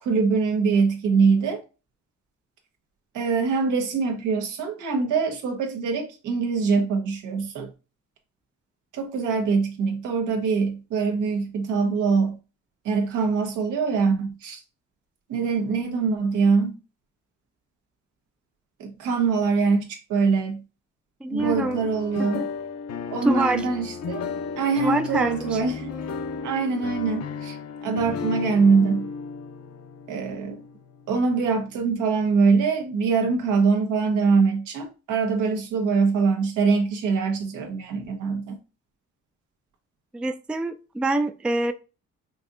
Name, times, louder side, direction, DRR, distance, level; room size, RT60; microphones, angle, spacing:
voice 1, 0.0-1.6 3.1-7.7 8.9-12.4 12.8-14.6 15.3-16.7 18.8-20.6 21.3-22.5 23.1-24.2 24.6-25.9 26.4-27.6 27.8-29.1 30.1-30.6 31.1-38.6, right 5 dB, 85° right, 1.2 m, -23 dB
voice 2, 21.2-21.8 22.2-22.5 23.2-23.7 24.8-25.7 40.1-41.7, right 2 dB, 5° right, 0.3 m, -26 dB
sound 1, 21.4-31.3, left 5 dB, 60° left, 0.6 m, -34 dB
5.3 x 2.7 x 2.5 m
cardioid pair, 90°, 30 cm